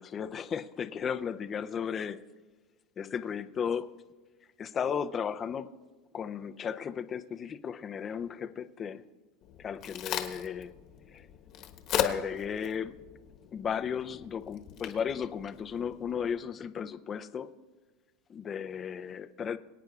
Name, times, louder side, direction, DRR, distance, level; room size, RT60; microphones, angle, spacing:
voice 1, 0.0-2.3 3.0-3.9 4.6-5.8 6.1-9.1 9.6-10.7 11.1-11.3 11.9-13.0 13.5-17.5 18.3-19.6, left 7 dB, 25° left, 0.5 m, -35 dB
Crack, 9.4-16.3, left 10 dB, 45° left, 1.1 m, -38 dB
23.5 x 9.3 x 2.4 m
supercardioid pair, 135°, 0 cm